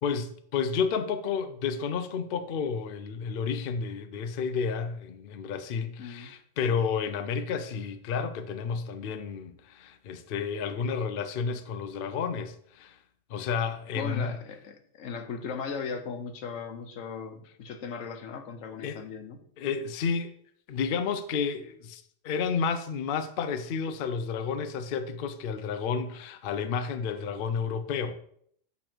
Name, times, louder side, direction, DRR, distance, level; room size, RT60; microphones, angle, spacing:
voice 1, 0.0-13.0 13.3-14.3 18.8-19.0 19.6-20.3 20.7-28.2, left 6 dB, 60° left, 0.6 m, -31 dB
voice 2, 6.0-6.3 13.9-19.4, left 5 dB, 80° left, 1.1 m, -37 dB
8.2 x 3.2 x 4.4 m
omnidirectional pair, 1.3 m